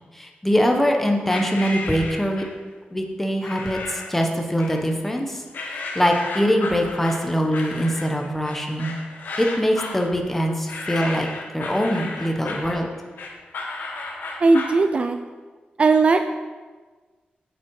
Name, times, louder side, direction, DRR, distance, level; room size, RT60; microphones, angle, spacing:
voice 1, 0.1-2.4 2.9-5.4 5.7-9.0 9.4-11.3 11.5-12.9, equal, 5° left, 2 dB, 1.0 m, -23 dB
sound 1, 1.3-2.6 3.4-4.2 4.6-5.2 5.5-14.8, left 3 dB, 70° left, 1.4 m, -34 dB
voice 2, 14.4-15.2 15.8-16.3, right 3 dB, 35° right, 8 dB, 0.4 m, -17 dB
8.3 x 7.6 x 4.8 m, 1.4 s
wide cardioid pair, 165°, 3 cm